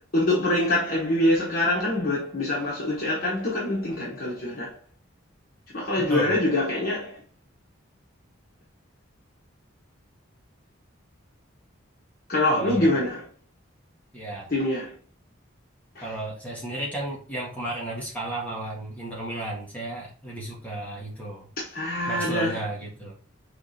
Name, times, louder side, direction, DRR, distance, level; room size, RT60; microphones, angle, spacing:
voice 1, 0.1-4.8 5.7-7.2 12.3-13.3 14.5-14.9 15.9-16.1 21.6-22.6, left 1 dB, 45° left, 1.1 m, -25 dB
voice 2, 12.5-12.9 14.1-14.5 16.0-21.5 22.1-23.1, right 1 dB, 10° left, 1.3 m, -33 dB
5.6 x 3.3 x 2.7 m
head